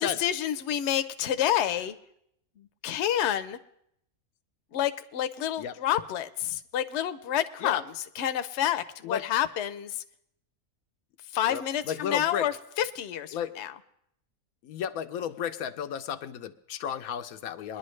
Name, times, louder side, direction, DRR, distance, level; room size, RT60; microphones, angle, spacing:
voice 1, 0.0-1.9 2.6-3.6 4.7-7.8 8.2-9.9 11.3-12.5 12.8-13.7, left 11 dB, 60° left, 10 dB, 0.8 m, -29 dB
voice 2, 11.5-12.5 13.3-13.5 14.6-17.8, left 8 dB, 85° left, 9 dB, 1.1 m, -33 dB
22.0 x 11.0 x 3.2 m, 0.74 s
omnidirectional pair, 1.5 m